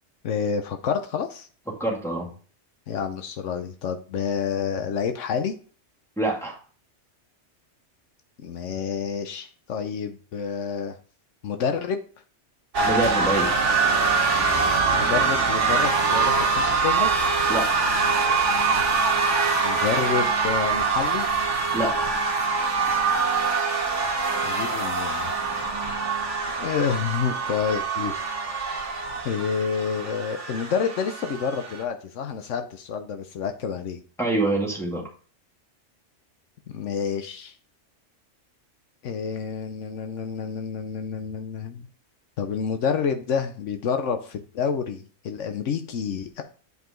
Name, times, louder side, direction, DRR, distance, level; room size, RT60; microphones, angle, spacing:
voice 1, 0.2-1.5 2.9-5.5 8.4-11.0 11.4-12.0 14.9-17.1 19.6-21.3 24.4-25.4 26.6-28.1 29.2-34.0 36.7-37.5 39.0-41.9 42.4-46.4, left 6 dB, 80° left, 7 dB, 1.1 m, -28 dB
voice 2, 1.8-2.3 6.2-6.6 12.8-13.5 17.5-17.9 21.7-22.1 34.2-35.0, right 2 dB, ahead, -3 dB, 2.2 m, -25 dB
sound 1, 12.7-31.8, right 4 dB, 75° right, 1.5 m, -24 dB
8.2 x 4.9 x 3.8 m, 0.41 s
omnidirectional pair, 1.3 m